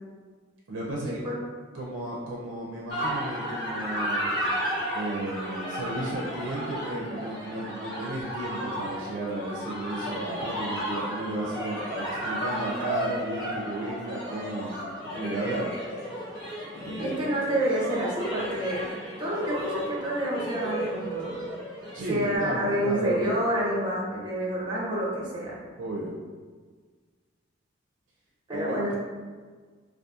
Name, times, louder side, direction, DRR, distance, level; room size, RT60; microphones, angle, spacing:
voice 1, 0.7-1.3 1.7-4.3 4.9-15.7 16.8-17.1 21.9-23.4 25.8-26.1 28.5-29.0, right 2 dB, 75° right, -4 dB, 0.4 m, -33 dB
sound 1, 2.9-22.4, equal, 90° left, 0.9 m, -33 dB
voice 2, 17.0-18.8 19.2-21.4 22.1-25.6 28.5-29.0, right 1 dB, 25° right, -4 dB, 0.5 m, -28 dB
2.7 x 2.3 x 2.3 m, 1.5 s
head